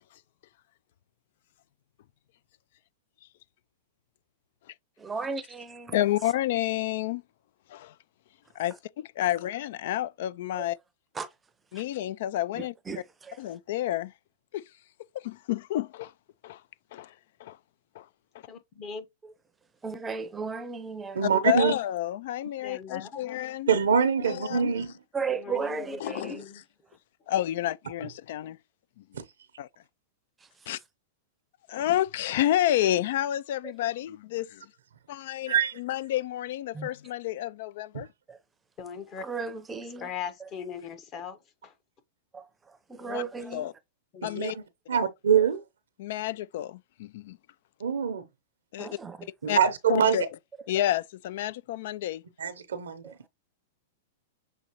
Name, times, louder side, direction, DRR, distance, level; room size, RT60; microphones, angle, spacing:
voice 1, 5.0-6.0 10.5-10.7 11.2-11.3 12.5-13.4 19.8-21.4 25.1-26.4 36.7-36.9 38.3-38.4 39.2-40.1 42.3-43.7 48.8-49.3 53.0-53.1, right 5 dB, 15° right, 0.6 m, -35 dB
voice 2, 5.9-7.2 7.7-7.9 8.6-10.8 11.7-12.7 13.4-14.1 14.5-14.6 15.1-16.1 16.4-16.6 16.9-17.1 17.4-17.6 18.0-18.1 21.2-24.7 26.0-26.4 27.3-28.6 29.0-29.1 29.6-29.7 30.7-30.8 31.7-34.7 35.1-38.1 43.0-43.2 43.5-43.7 44.2-44.6 46.0-47.4 48.7-48.9 49.5-49.6 49.9-50.3 50.7-52.2, left 13 dB, 65° left, 0.3 m, -30 dB
voice 3, 18.5-19.1 22.6-23.4 24.2-24.9 25.3-26.6 38.8-39.2 40.0-41.7 44.1-44.4, left 6 dB, 35° left, 1.0 m, -40 dB
voice 4, 21.1-21.7 23.7-24.9 29.1-29.2 35.5-35.7 37.9-38.1 44.2-44.6 44.9-45.6 47.8-48.3 49.4-50.2 52.4-53.1, right 7 dB, 90° right, 0.7 m, -24 dB
6.4 x 2.8 x 2.9 m
hypercardioid pair, 120°, 0 cm